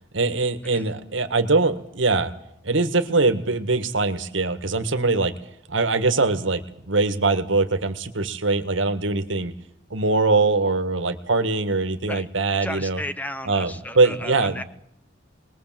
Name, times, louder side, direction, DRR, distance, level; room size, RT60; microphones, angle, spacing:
voice 1, 0.1-2.3 2.6-5.3 5.7-9.5 9.9-13.0 13.4-14.6, right 3 dB, 75° right, 10 dB, 1.7 m, -22 dB
voice 2, 12.6-14.6, left 1 dB, 10° left, 12 dB, 0.8 m, -34 dB
21.5 x 20.5 x 7.6 m, 0.70 s
head